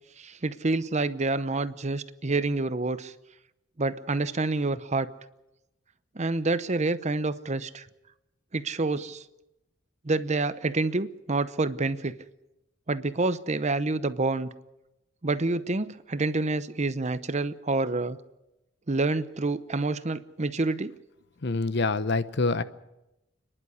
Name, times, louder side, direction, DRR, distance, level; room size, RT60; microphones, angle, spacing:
voice 1, 0.2-3.1 3.8-5.1 6.1-7.8 8.5-9.2 10.0-12.1 12.9-14.5 15.2-18.2 18.9-20.9, right 3 dB, 35° right, 14 dB, 0.8 m, -28 dB
voice 2, 21.4-22.6, left 3 dB, 60° left, 14 dB, 0.9 m, -26 dB
29.0 x 11.0 x 9.7 m, 0.93 s
head